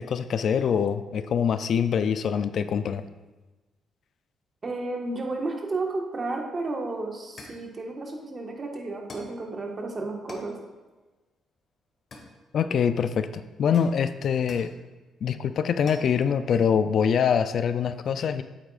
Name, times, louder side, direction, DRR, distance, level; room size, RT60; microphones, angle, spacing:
voice 1, 0.0-3.0 12.5-14.7 15.2-18.4, left 7 dB, 60° left, 11 dB, 0.4 m, -24 dB
voice 2, 4.6-10.6, right 2 dB, 35° right, 1 dB, 1.4 m, -32 dB
sound 1, 6.7-6.8 7.4-7.7 9.1-9.4 10.3-10.6 12.1-12.8 13.7-14.8 15.9-16.2, left 2 dB, 45° left, 1.5 m, -45 dB
8.7 x 8.0 x 2.4 m, 1.2 s
cardioid pair, 90°, 0 cm